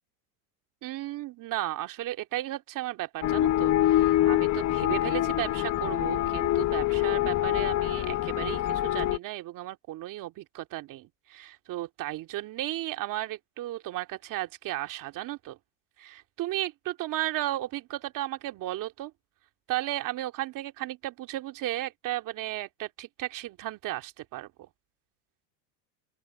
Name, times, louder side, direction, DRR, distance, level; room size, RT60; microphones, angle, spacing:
voice 1, 0.8-15.6 16.0-19.1 19.7-24.5, right 15 dB, 45° right, 2.3 m, -34 dB
sound 1, 3.2-9.2, left 14 dB, 40° left, 1.1 m, -25 dB
open air
supercardioid pair, 125°, 45 cm